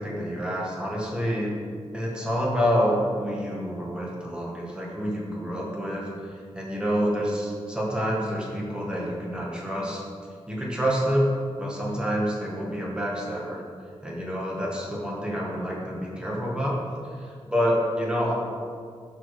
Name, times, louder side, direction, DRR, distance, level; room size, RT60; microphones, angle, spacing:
voice 1, 0.0-1.5 1.9-10.0 10.5-11.3 11.6-13.6 14.0-16.8 17.2-18.3, equal, 10° right, -4 dB, 1.6 m, -27 dB
11.0 x 4.8 x 4.8 m, 2.2 s
wide cardioid pair, 180°, 11 cm